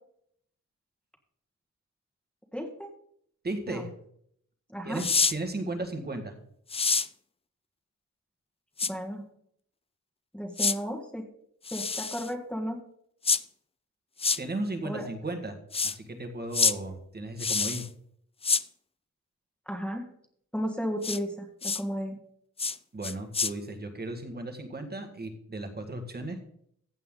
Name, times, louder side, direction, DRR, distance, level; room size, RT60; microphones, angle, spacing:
voice 1, 2.5-2.9 3.7-3.9 4.7-5.0 8.9-9.2 10.3-11.2 11.7-12.8 14.8-15.1 19.7-20.0 20.5-22.2, equal, 5° left, 1 dB, 1.6 m, -34 dB
voice 2, 3.4-3.9 4.9-6.4 14.4-15.6 15.8-17.8 22.9-26.4, right 2 dB, 35° right, 5 dB, 1.8 m, -35 dB
sound 1, 5.0-5.3 6.7-7.1 8.8-8.9 10.6-10.8 11.6-12.3 13.2-13.4 14.2-14.4 15.7-15.9 16.5-16.7 17.4-17.9 18.4-18.6 21.0-21.2 21.6-21.8 22.6-22.8 23.0-23.5, left 4 dB, 20° left, 0.3 m, -26 dB
15.0 x 8.3 x 3.9 m, 0.69 s
wide cardioid pair, 130°, 29 cm